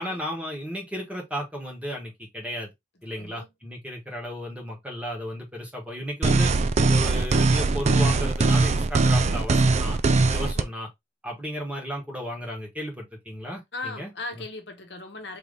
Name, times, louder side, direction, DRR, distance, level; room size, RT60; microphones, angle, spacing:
voice 1, 0.0-2.7 3.0-6.5 6.9-10.0 10.3-10.9 11.2-14.4, equal, 10° right, 1.3 m, -34 dB
voice 2, 3.1-3.5 10.5-10.7 13.7-15.4, left 2 dB, 65° left, 1.0 m, -38 dB
sound 1, 6.2-10.6, right 3 dB, 35° right, 0.4 m, -21 dB
3.9 x 2.9 x 3.3 m
head